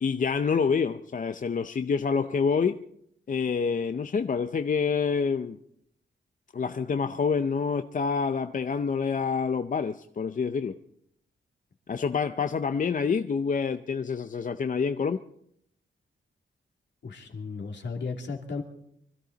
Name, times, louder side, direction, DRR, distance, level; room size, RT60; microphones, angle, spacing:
voice 1, 0.0-2.8 3.3-5.6 6.5-10.8 11.9-15.2, left 5 dB, 40° left, 0.6 m, -27 dB
voice 2, 17.0-18.6, left 4 dB, 65° left, 2.7 m, -35 dB
24.5 x 13.5 x 3.9 m
wide cardioid pair, 115°, 20 cm